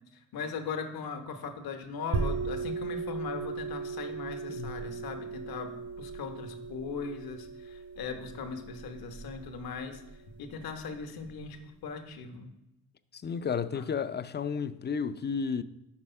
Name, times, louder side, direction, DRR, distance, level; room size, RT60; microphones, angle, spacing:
voice 1, 0.3-10.0 10.4-11.6 11.8-12.5 13.7-13.8, left 5 dB, 65° left, 1.0 m, -39 dB
sound 1, 2.1-11.5, right 4 dB, 55° right, 1.8 m, -38 dB
voice 2, 4.5-4.8 13.1-15.6, left 6 dB, 25° left, 0.5 m, -32 dB
5.4 x 4.9 x 5.4 m
hypercardioid pair, 45°, 39 cm